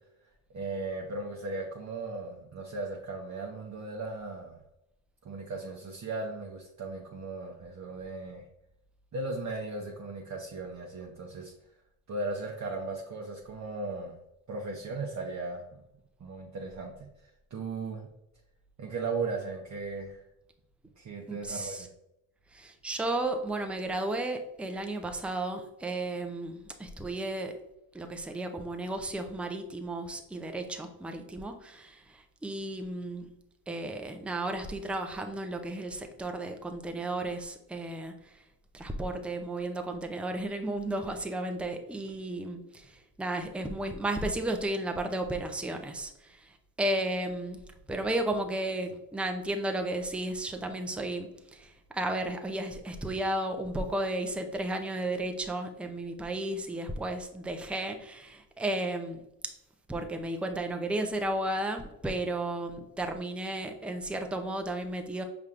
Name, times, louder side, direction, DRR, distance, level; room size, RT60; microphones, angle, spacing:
voice 1, 0.5-4.6 5.2-8.5 9.1-11.5 12.1-14.1 14.5-15.8 16.2-18.1 18.8-20.2 21.0-21.9, right 3 dB, 35° right, 0 dB, 0.7 m, -37 dB
voice 2, 21.3-21.9 22.5-27.7 27.9-33.3 33.7-38.4 38.7-47.6 47.9-59.2 59.9-65.2, right 1 dB, ahead, 5 dB, 0.5 m, -33 dB
5.4 x 3.4 x 2.5 m, 0.85 s
supercardioid pair, 65°, 49 cm